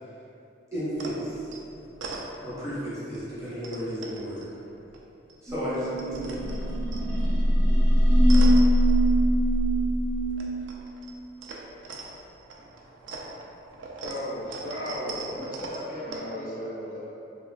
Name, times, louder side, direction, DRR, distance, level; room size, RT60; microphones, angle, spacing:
voice 1, 0.7-1.4 2.4-4.4 5.4-6.4, equal, 15° right, -11 dB, 0.7 m, -33 dB
sound 1, 0.9-2.8 3.1-5.4 5.6-9.6 9.9-16.2, right 3 dB, 85° right, 0.3 m, -41 dB
sound 2, 5.5-10.5, equal, 50° right, 0.6 m, -21 dB
voice 2, 14.0-15.4 16.1-17.0, left 1 dB, 90° left, -6 dB, 0.6 m, -35 dB
voice 3, 15.3-17.1, left 1 dB, 45° left, -6 dB, 0.5 m, -39 dB
3.0 x 2.3 x 2.3 m, 2.7 s
head